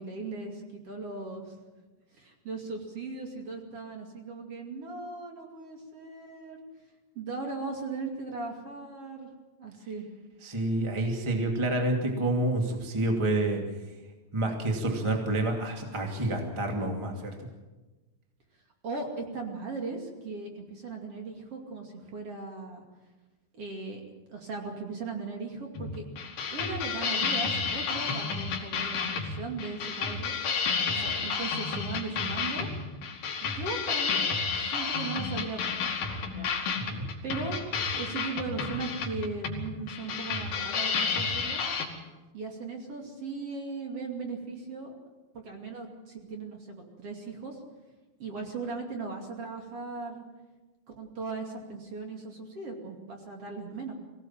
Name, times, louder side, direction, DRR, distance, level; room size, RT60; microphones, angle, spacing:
voice 1, 0.0-1.5 2.1-6.6 7.1-9.3 9.6-10.0 18.8-22.8 23.5-24.0 24.3-26.0 26.5-30.4 30.9-32.7 33.4-35.9 36.3-36.8 37.2-37.6 37.9-41.6 42.3-45.0 45.3-47.6 48.2-50.2 51.0-53.9, right 3 dB, 40° right, 2 dB, 2.7 m, -38 dB
voice 2, 10.4-13.6 14.3-17.5 28.1-28.2 30.9-31.2 36.8-37.1, right 1 dB, 20° right, 2 dB, 0.8 m, -29 dB
sound 1, 25.8-41.9, left 5 dB, 55° left, 3.7 m, -31 dB
23.5 x 17.5 x 7.5 m, 1.2 s
omnidirectional pair, 5.4 m